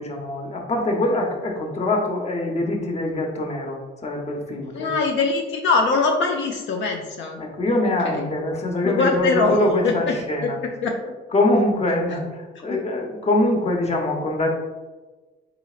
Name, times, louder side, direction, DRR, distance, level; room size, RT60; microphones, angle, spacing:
voice 1, 0.0-4.9 7.4-10.6 11.3-14.5, left 1 dB, 35° left, 1 dB, 0.8 m, -23 dB
voice 2, 4.7-7.4 8.0-8.3 8.8-9.6 9.8-9.9 10.8-10.9 12.7-12.8, left 4 dB, 70° left, 2 dB, 0.5 m, -22 dB
4.0 x 3.9 x 2.4 m, 1.2 s
cardioid pair, 90°, 20 cm